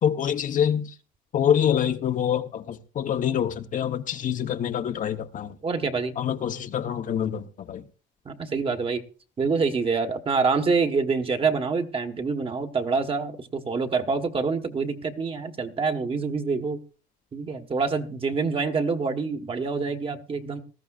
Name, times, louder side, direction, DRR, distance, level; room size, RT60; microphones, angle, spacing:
voice 1, 0.0-1.0 1.3-5.6 6.2-7.8, left 9 dB, 50° left, 1.1 m, -26 dB
voice 2, 5.6-6.1 8.2-9.0 9.4-16.8 17.3-20.6, right 4 dB, 35° right, 1.5 m, -26 dB
19.5 x 13.5 x 2.5 m
cardioid pair, 110°, 17 cm